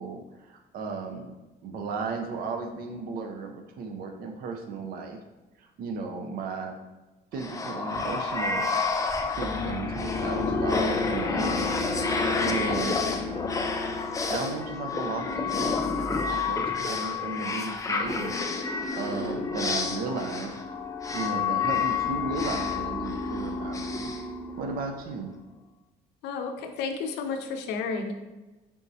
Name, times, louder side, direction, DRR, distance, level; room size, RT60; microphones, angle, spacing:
voice 1, 0.0-1.3 1.6-5.2 5.6-6.8 7.3-8.7 9.4-11.7 12.4-13.0 14.3-20.6 21.1-24.1 24.6-25.3, right 4 dB, 60° right, 4 dB, 0.5 m, -35 dB
sound 1, 7.4-25.0, left 4 dB, 20° left, 0.4 m, -29 dB
voice 2, 26.2-28.1, left 5 dB, 85° left, 6 dB, 0.5 m, -32 dB
3.5 x 2.7 x 4.1 m, 1.1 s
cardioid pair, 110°, 17 cm